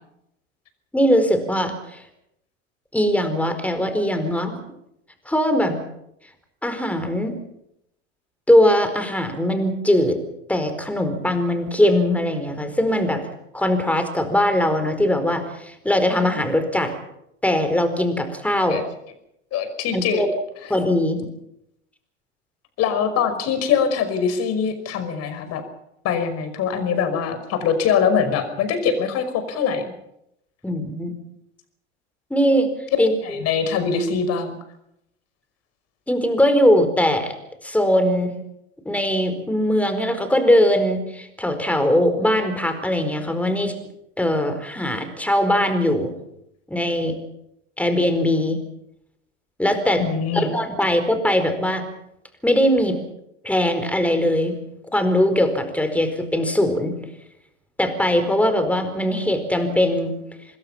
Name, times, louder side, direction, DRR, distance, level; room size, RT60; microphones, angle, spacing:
voice 1, 0.9-2.0 2.9-4.6 5.3-5.8 6.6-7.4 8.5-10.2 10.5-13.2 13.5-16.9 17.4-18.8 19.9-20.3 20.7-21.3 30.6-31.1 32.3-32.7 33.0-33.4 36.1-37.3 37.6-38.4 38.8-43.8 44.2-46.1 46.7-47.2 47.8-48.6 49.6-50.0 50.3-51.9 52.4-53.0 53.4-54.6 54.9-57.0 57.8-60.1, left 1 dB, 5° left, 8 dB, 4.5 m, -20 dB
voice 2, 19.5-20.2 22.8-25.6 26.0-29.8 33.2-34.6 50.0-50.6, left 6 dB, 40° left, 9 dB, 5.4 m, -23 dB
26.0 x 21.0 x 5.9 m, 0.80 s
hypercardioid pair, 95°, 37 cm